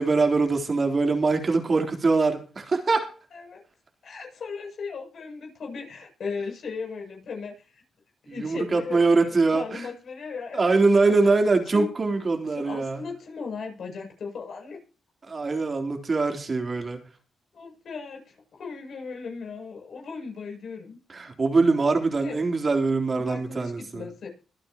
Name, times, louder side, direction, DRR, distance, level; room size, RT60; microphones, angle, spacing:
voice 1, 0.0-3.1 8.4-9.8 10.5-13.0 15.3-17.0 21.1-24.0, right 3 dB, 35° right, 4 dB, 3.6 m, -23 dB
voice 2, 3.3-3.6 4.0-7.8 8.2-11.1 11.7-11.9 12.5-14.8 17.5-21.0 22.2-22.4 23.2-24.3, left 5 dB, 65° left, 1 dB, 7.5 m, -37 dB
24.5 x 9.2 x 3.0 m, 0.37 s
cardioid pair, 90°, 0 cm